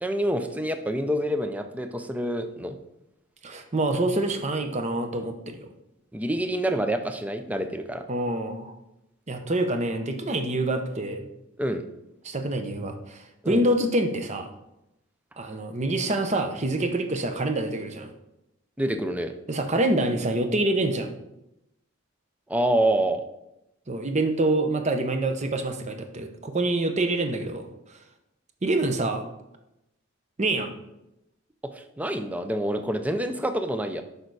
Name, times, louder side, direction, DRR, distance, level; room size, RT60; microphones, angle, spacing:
voice 1, 0.0-2.8 6.1-8.0 11.6-11.8 13.4-13.6 18.8-19.3 22.5-23.2 31.7-34.0, right 1 dB, 5° right, 7 dB, 0.5 m, -27 dB
voice 2, 3.4-5.7 8.1-8.8 9.3-11.3 12.2-14.5 15.4-18.1 19.5-21.1 23.9-27.7 28.6-29.2 30.4-30.7, right 2 dB, 35° right, 6 dB, 0.8 m, -26 dB
6.6 x 5.3 x 4.7 m, 0.87 s
head